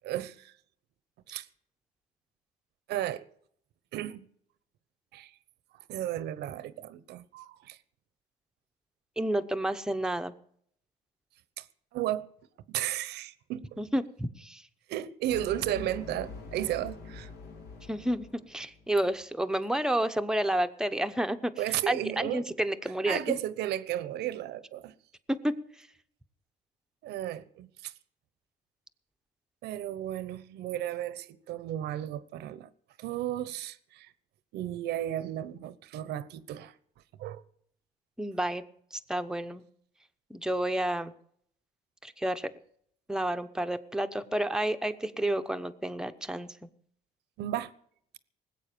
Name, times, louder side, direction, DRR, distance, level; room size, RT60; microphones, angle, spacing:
voice 1, 0.0-0.5 1.3-1.5 2.9-3.3 3.9-4.3 5.1-5.3 5.9-7.8 11.6-11.7 11.9-12.3 12.7-13.8 14.9-17.3 21.6-22.4 23.1-24.9 27.0-27.9 29.6-32.7 33.0-34.1 34.5-36.7 37.2-37.4 47.4-47.7, right 12 dB, 75° right, 1.0 m, -34 dB
voice 2, 9.2-10.3 13.8-14.6 17.9-21.5 21.9-23.3 25.3-25.6 38.2-38.6 38.9-39.6 40.3-41.1 42.0-42.5 43.1-46.5, right 1 dB, 5° right, 0.9 m, -30 dB
sound 1, 15.3-18.9, left 4 dB, 70° left, 2.8 m, -45 dB
19.5 x 8.3 x 6.8 m
cardioid pair, 110°, 17 cm